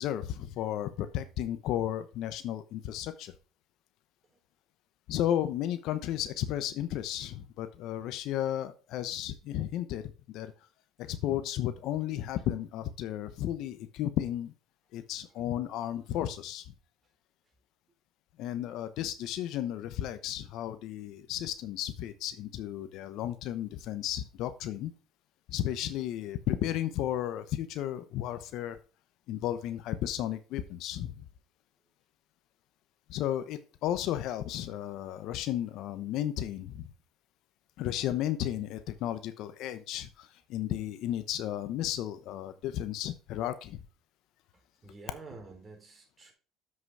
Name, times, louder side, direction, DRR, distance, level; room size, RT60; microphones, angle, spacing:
voice 1, 0.0-3.3 5.1-10.5 11.0-14.5 14.9-16.7 18.4-24.9 25.5-28.8 29.3-31.2 33.1-36.9 37.8-43.8, left 12 dB, 70° left, 12 dB, 0.9 m, -33 dB
voice 2, 44.8-46.3, right 3 dB, 30° right, 2 dB, 3.9 m, -48 dB
7.6 x 6.1 x 4.7 m, 0.35 s
supercardioid pair, 85°, 0 cm